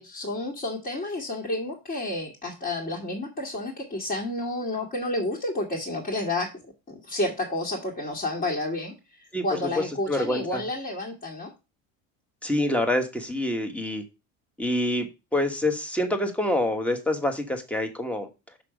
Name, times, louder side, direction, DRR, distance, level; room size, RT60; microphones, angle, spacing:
voice 1, 0.0-11.5, left 2 dB, 25° left, 2.1 m, -30 dB
voice 2, 10.1-10.6 12.4-14.0 14.6-18.3, left 1 dB, 5° left, 1.4 m, -26 dB
6.0 x 6.0 x 5.0 m
cardioid pair, 135°, 33 cm